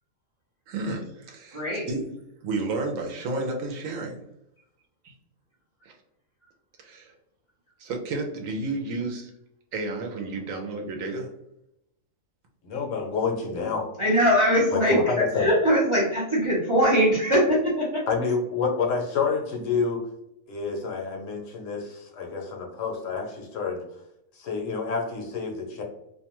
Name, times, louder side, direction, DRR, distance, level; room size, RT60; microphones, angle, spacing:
voice 1, 0.7-2.1 2.4-4.2 5.0-5.1 6.8-7.1 7.8-9.3 9.7-11.3, right 3 dB, 75° right, 2 dB, 1.0 m, -31 dB
voice 2, 1.5-1.9 14.0-18.0, equal, 35° right, -5 dB, 0.5 m, -21 dB
voice 3, 12.6-13.9 14.7-15.5 18.1-20.0 20.5-23.8 24.3-25.8, left 5 dB, 70° left, 1 dB, 1.0 m, -28 dB
2.6 x 2.2 x 2.9 m, 0.82 s
omnidirectional pair, 1.5 m